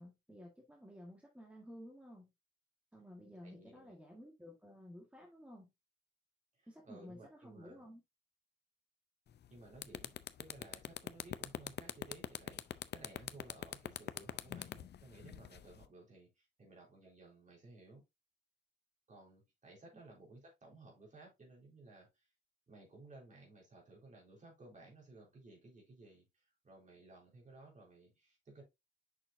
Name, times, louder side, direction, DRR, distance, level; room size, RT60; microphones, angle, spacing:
voice 1, 0.0-2.3 2.9-5.7 6.7-8.0, equal, 5° right, 1.6 m, -54 dB
voice 2, 3.4-4.0 6.6-7.9 9.5-18.0 19.1-22.3 22.7-28.6, right 2 dB, 40° right, 3.8 m, -57 dB
sound 1, 9.3-9.5 9.8-15.9, left 10 dB, 55° left, 0.5 m, -42 dB
6.6 x 5.9 x 2.6 m
wide cardioid pair, 130°, 20 cm